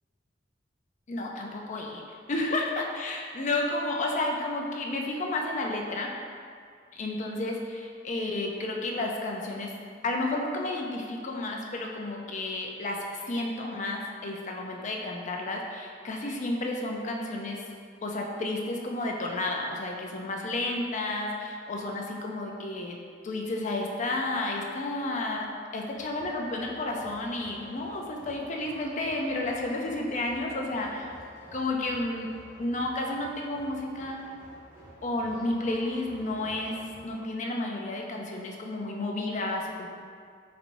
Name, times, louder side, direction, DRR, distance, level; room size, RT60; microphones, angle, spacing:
voice 1, 1.1-6.1 6.9-9.7 10.0-17.6 18.0-23.0 23.2-25.5 25.7-31.1 31.5-32.3 32.6-34.2 35.0-39.9, left 2 dB, 40° left, 0 dB, 0.5 m, -31 dB
sound 1, 25.9-37.2, equal, 15° right, 1.5 m, -50 dB
4.4 x 4.1 x 2.6 m, 2.2 s
head